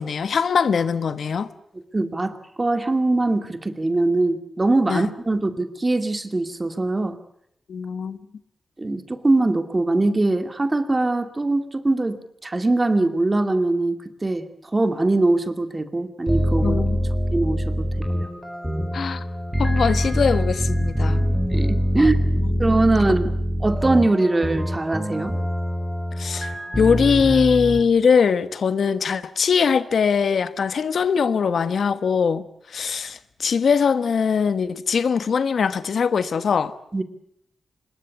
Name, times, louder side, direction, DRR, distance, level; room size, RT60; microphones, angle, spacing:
voice 1, 0.0-1.5 4.9-5.1 7.7-8.2 16.6-17.1 18.9-19.2 19.6-21.3 22.0-22.1 26.2-36.7, left 6 dB, 75° left, 1.3 m, -21 dB
voice 2, 1.9-7.2 8.8-16.8 17.3-17.8 18.1-18.3 21.5-22.2 22.6-23.2 23.6-25.3 36.9-37.0, right 2 dB, 25° right, 2.4 m, -22 dB
sound 1, 16.3-27.8, equal, ahead, 4.4 m, -24 dB
25.5 x 22.0 x 8.3 m
wide cardioid pair, 135°, 0 cm